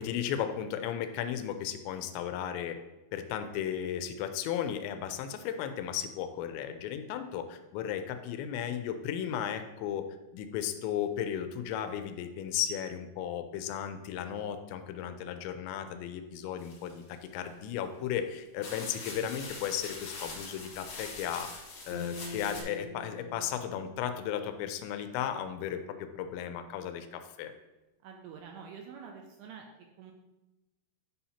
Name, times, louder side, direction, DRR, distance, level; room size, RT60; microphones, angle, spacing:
voice 1, 0.0-2.8 3.1-10.1 10.3-27.5, left 9 dB, 85° left, 8 dB, 2.8 m, -35 dB
sound 1, 16.6-17.5 18.1-18.2 18.6-22.6, left 3 dB, 55° left, 2.1 m, -43 dB
sound 2, 21.9-25.2, left 1 dB, 35° right, 3.2 m, -45 dB
voice 2, 28.0-29.7 30.0-30.1, right 6 dB, 80° right, 1 dB, 2.3 m, -47 dB
10.0 x 5.6 x 2.8 m, 1.0 s
omnidirectional pair, 5.1 m